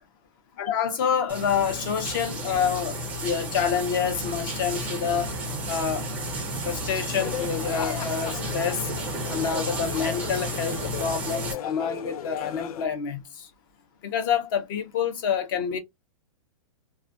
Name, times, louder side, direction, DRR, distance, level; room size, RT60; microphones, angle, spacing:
voice 1, 0.6-3.0 3.2-5.3 5.7-6.0 6.6-8.9 9.3-13.5 14.0-15.8, left 7 dB, 35° left, 0.6 m, -27 dB
sound 1, 1.3-11.5, right 1 dB, 10° right, 0.4 m, -32 dB
sound 2, 7.2-12.9, left 9 dB, 85° left, 0.4 m, -36 dB
2.3 x 2.2 x 2.4 m
hypercardioid pair, 160°, 18 cm